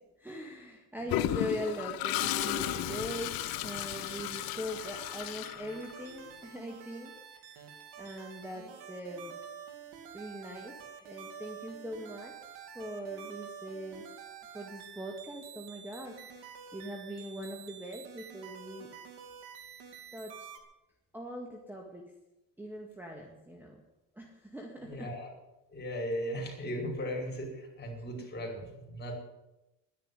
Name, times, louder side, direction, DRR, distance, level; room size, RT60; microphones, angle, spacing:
voice 1, 0.2-7.6 8.0-9.3 10.1-12.3 12.7-14.1 14.5-18.9 20.1-20.5 21.1-22.1 22.6-23.8 24.1-25.1, equal, 5° right, 1 dB, 1.9 m, -41 dB
Toilet flush, 1.1-6.2, left 16 dB, 65° left, 0.7 m, -34 dB
sound 1, 2.2-20.6, right 7 dB, 75° right, 2.8 m, -48 dB
voice 2, 24.8-25.3 25.7-29.2, equal, 25° left, 0 dB, 5.3 m, -37 dB
12.0 x 10.0 x 9.8 m, 0.96 s
cardioid pair, 120°, 38 cm